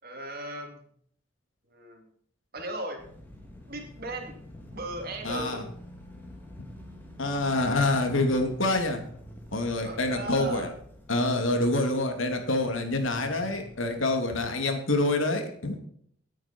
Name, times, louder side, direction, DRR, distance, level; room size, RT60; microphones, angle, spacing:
voice 1, 0.0-0.8 1.6-2.0 2.5-3.1 3.7-4.4 4.7-5.7 9.8-10.7, right 1 dB, 50° right, 3 dB, 3.2 m, -37 dB
sound 1, 3.0-14.1, left 1 dB, 10° left, 2.9 m, -48 dB
voice 2, 5.2-5.6 7.2-9.0 9.5-10.7 11.1-15.8, left 2 dB, 80° left, 4 dB, 2.7 m, -26 dB
18.5 x 9.2 x 4.6 m, 0.64 s
head